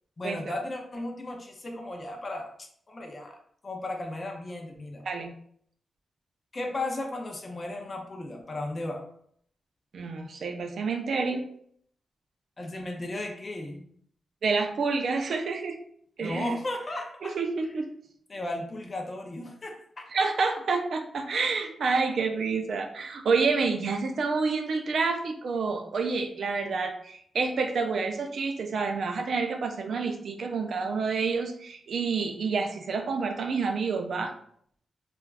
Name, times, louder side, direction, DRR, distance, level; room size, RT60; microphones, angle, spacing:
voice 1, 0.2-3.4 3.6-5.0 6.5-9.0 12.6-13.8 16.2-17.3 18.3-20.0, left 1 dB, 30° left, 3 dB, 0.4 m, -35 dB
voice 2, 9.9-11.4 14.4-15.8 16.2-16.5 17.2-17.9 20.1-34.3, right 4 dB, 60° right, 5 dB, 0.3 m, -28 dB
3.2 x 2.3 x 2.3 m, 0.64 s
wide cardioid pair, 165°, 0 cm